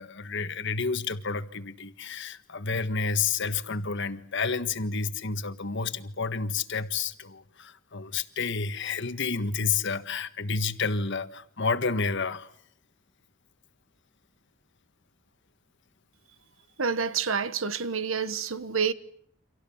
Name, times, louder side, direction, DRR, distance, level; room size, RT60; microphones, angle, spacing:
voice 1, 0.0-12.5, left 4 dB, 60° left, 1.6 m, -30 dB
voice 2, 16.8-18.9, right 6 dB, 75° right, 1.3 m, -28 dB
29.5 x 26.0 x 7.2 m
head